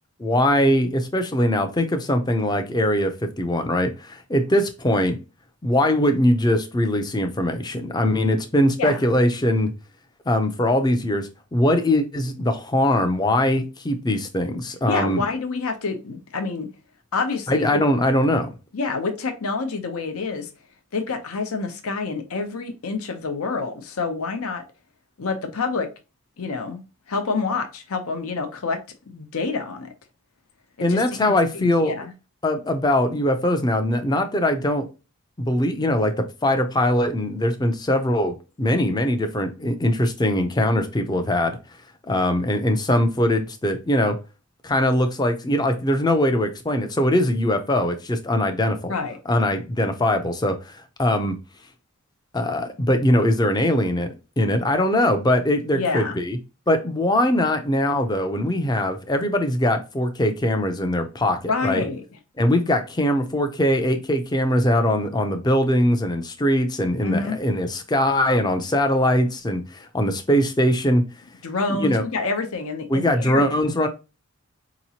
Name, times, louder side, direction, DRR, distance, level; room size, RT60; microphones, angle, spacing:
voice 1, 0.2-5.2 5.6-9.7 10.3-15.2 17.5-18.5 30.8-31.9 32.4-34.9 35.4-41.6 42.1-44.2 44.6-48.9 49.3-51.4 52.3-56.4 56.7-61.9 62.4-71.0 71.8-72.0 72.9-73.9, left 1 dB, 20° left, 0.4 m, -21 dB
voice 2, 14.9-16.7 17.1-17.7 18.7-20.5 20.9-24.6 25.2-25.9 26.4-28.8 29.1-29.9 30.8-31.0 31.5-32.1 48.9-49.2 55.7-56.2 61.5-62.0 67.0-67.4 71.4-73.5, left 4 dB, 75° left, 0.7 m, -27 dB
4.7 x 2.9 x 2.8 m
head